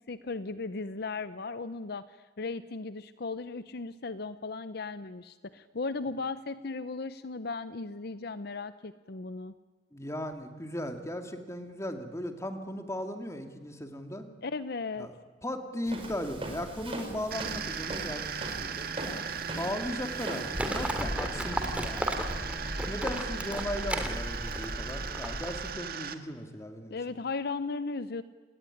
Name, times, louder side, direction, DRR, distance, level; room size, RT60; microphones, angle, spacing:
voice 1, 0.1-9.5 14.4-15.1 26.9-28.2, left 3 dB, 60° left, 13 dB, 0.7 m, -36 dB
voice 2, 9.9-14.3 15.0-15.1 15.4-19.2 19.6-22.1 22.9-27.0, left 1 dB, 15° left, 6 dB, 2.5 m, -37 dB
Walk footsteps, 15.9-21.1, right 1 dB, 30° right, 4.9 m, -40 dB
sound 1, 17.3-26.1, right 6 dB, 55° right, 1.6 m, -37 dB
Livestock farm animals working animals, 20.5-25.7, equal, 5° right, 2.7 m, -34 dB
29.0 x 19.0 x 10.0 m, 1.5 s
head